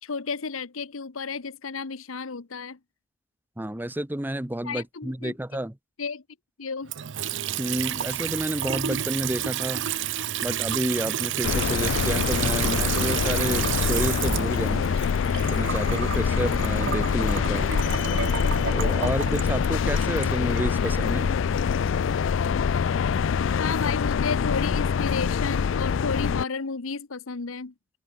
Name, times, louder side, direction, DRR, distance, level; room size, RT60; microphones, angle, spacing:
voice 1, 0.0-2.8 4.6-5.3 6.0-6.2 6.6-6.9 23.6-27.7, left 5 dB, 90° left, 1.0 m, -32 dB
voice 2, 3.6-5.7 7.6-9.9 10.4-14.9 15.5-17.7 18.7-21.3, right 1 dB, 10° right, 0.8 m, -30 dB
Water tap faucet / Sink (filling or washing) / Trickle dribble, 6.8-21.0, right 10 dB, 65° right, 0.6 m, -30 dB
sound 1, 11.4-26.4, left 6 dB, 65° left, 0.4 m, -25 dB
head